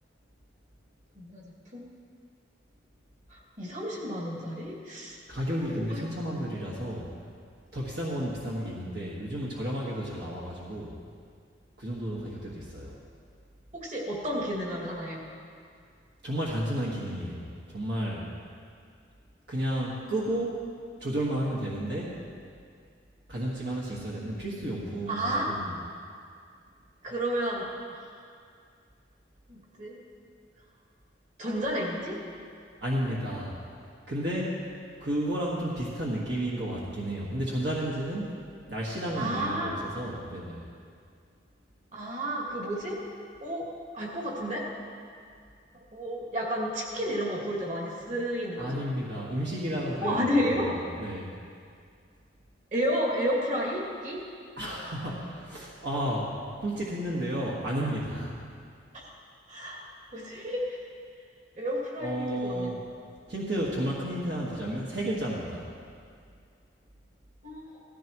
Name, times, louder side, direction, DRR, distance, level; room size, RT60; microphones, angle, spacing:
voice 1, 1.2-1.9 3.3-5.2 5.6-6.1 13.7-15.3 25.1-25.5 27.0-28.2 29.5-30.0 31.4-32.2 39.1-39.8 41.9-43.0 43.4-43.7 43.9-44.7 45.9-48.8 50.0-50.7 52.7-54.2 58.9-59.1 59.5-59.9 60.1-60.8 61.6-62.7 67.4-67.8, equal, 40° right, -3 dB, 2.5 m, -31 dB
voice 2, 5.3-7.1 7.7-10.9 11.8-13.0 16.2-18.3 19.5-20.6 21.0-22.2 23.3-25.7 32.8-33.5 34.1-34.6 35.0-38.4 38.7-40.6 48.6-51.3 54.6-58.4 62.0-62.8 63.3-65.7, right 1 dB, 60° right, -5 dB, 1.7 m, -32 dB
17.0 x 14.5 x 3.1 m, 2.2 s
head